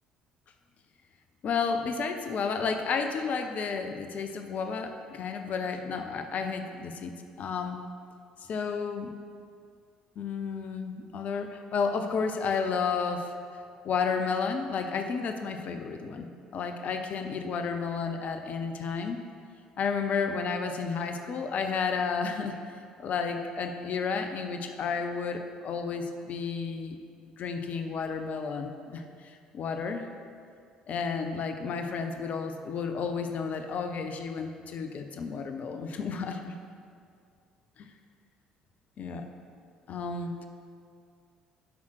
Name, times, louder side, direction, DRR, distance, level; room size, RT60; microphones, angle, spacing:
voice 1, 1.4-7.1 7.4-7.8 8.5-9.1 10.2-13.3 13.8-19.2 19.8-22.6 23.0-27.0 27.4-30.1 30.9-36.5 37.8-37.9 39.0-39.3 39.9-40.5, left 5 dB, 45° left, 6 dB, 0.7 m, -32 dB
12.0 x 5.6 x 4.7 m, 2.2 s
figure-of-eight pair, 50°, 4 cm